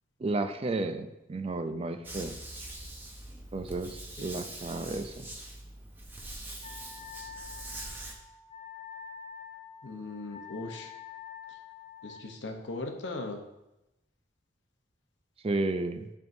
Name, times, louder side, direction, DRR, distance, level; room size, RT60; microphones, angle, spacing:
voice 1, 0.2-2.4 3.5-5.3 15.4-16.1, right 2 dB, 30° right, 9 dB, 0.3 m, -32 dB
sound 1, 2.0-8.1, right 1 dB, 10° right, 0.7 m, -43 dB
Wind instrument woodwind instrument, 6.6-12.3, left 7 dB, 25° left, 0.6 m, -47 dB
voice 2, 9.8-10.9 12.0-13.4, left 2 dB, 65° left, 4 dB, 0.8 m, -38 dB
10.5 x 3.5 x 2.6 m, 0.94 s
head